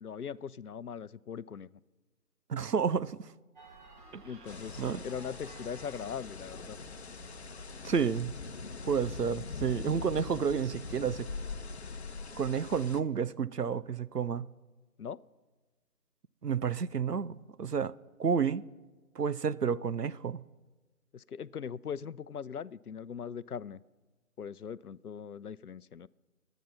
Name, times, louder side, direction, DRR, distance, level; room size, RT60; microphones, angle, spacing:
voice 1, 0.0-1.7 4.2-6.8 15.0-15.2 21.1-23.8 24.4-26.1, left 7 dB, 70° left, 0.7 m, -40 dB
voice 2, 2.5-3.2 4.1-4.2 4.8-5.0 7.8-8.3 8.9-11.3 12.4-14.5 16.4-17.9 18.2-18.6 19.2-20.4, right 6 dB, 85° right, 0.8 m, -30 dB
sound 1, 3.5-8.9, right 2 dB, 30° right, 4.5 m, -54 dB
sound 2, 4.5-13.0, left 4 dB, 45° left, 0.9 m, -42 dB
22.5 x 9.3 x 5.9 m
figure-of-eight pair, 155°, 46 cm